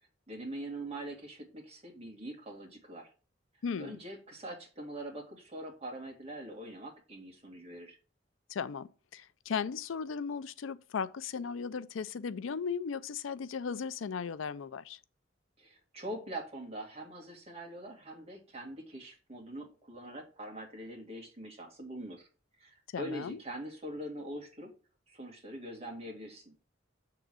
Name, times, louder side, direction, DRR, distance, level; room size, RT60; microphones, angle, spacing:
voice 1, 0.3-3.1 3.8-8.0 15.6-22.3 22.6-24.7 25.1-26.5, right 1 dB, 35° right, 2.2 m, -43 dB
voice 2, 3.6-4.0 8.5-15.0 22.9-23.4, left 6 dB, 90° left, 0.4 m, -36 dB
7.0 x 3.8 x 6.1 m
head